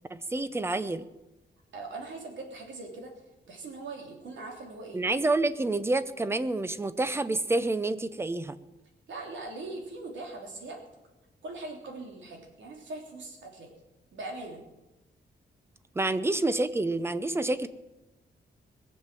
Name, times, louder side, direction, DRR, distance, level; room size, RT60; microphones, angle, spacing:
voice 1, 0.1-1.1 4.9-8.5 16.0-17.7, right 2 dB, 15° right, 13 dB, 0.6 m, -28 dB
voice 2, 1.7-3.1 3.5-5.0 9.1-10.8 11.4-13.7 14.1-14.6, right 2 dB, 90° right, 1 dB, 3.2 m, -41 dB
20.5 x 7.5 x 7.6 m, 1.0 s
wide cardioid pair, 170°, 19 cm